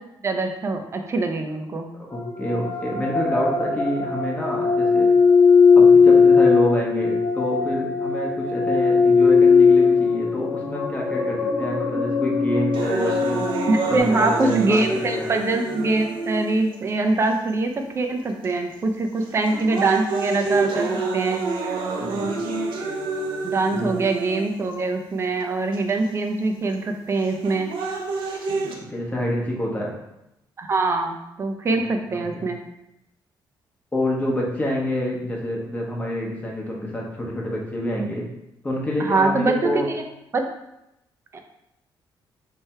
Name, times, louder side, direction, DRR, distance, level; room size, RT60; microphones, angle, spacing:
voice 1, 0.2-1.9 13.7-20.9 21.1-21.8 23.4-27.7 30.6-32.6 39.0-39.9 40.3-40.4, right 3 dB, 30° right, 4 dB, 0.6 m, -23 dB
sound 1, 2.1-14.0, left 5 dB, 50° left, 0.8 m, -18 dB
voice 2, 2.1-5.1 5.7-13.4 13.9-15.3 22.0-22.3 23.7-23.9 28.9-29.9 32.1-32.4 33.9-38.2 38.6-39.9, left 1 dB, 15° left, -2 dB, 1.0 m, -27 dB
sound 2, 12.7-16.8 17.5-17.6 18.4-18.7 19.2-24.7 25.7-25.8 27.2-28.7, right 3 dB, 80° right, 0.7 m, -27 dB
3.4 x 3.2 x 4.3 m, 0.85 s
cardioid pair, 130°, 8 cm